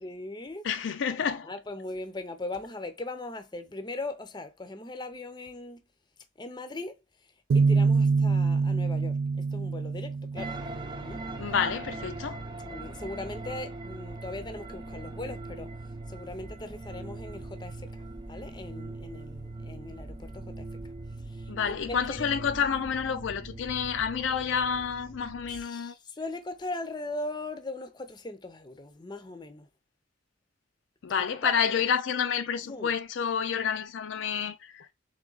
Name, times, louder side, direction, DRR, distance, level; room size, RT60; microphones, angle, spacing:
voice 1, 0.0-0.6 1.3-5.8 6.4-7.0 7.5-9.2 9.5-10.5 11.0-11.2 12.6-15.7 16.1-17.8 18.3-20.7 21.3-22.2 25.5-29.7 31.4-31.5 32.6-32.9, left 2 dB, 20° left, 0.6 m, -39 dB
voice 2, 0.6-1.5 11.4-12.4 21.5-25.9 31.0-34.9, left 7 dB, 75° left, 0.4 m, -29 dB
sound 1, 7.5-11.2, right 4 dB, 80° right, 0.3 m, -25 dB
sound 2, 10.4-25.6, right 2 dB, 25° right, 0.5 m, -41 dB
3.7 x 3.6 x 3.9 m
head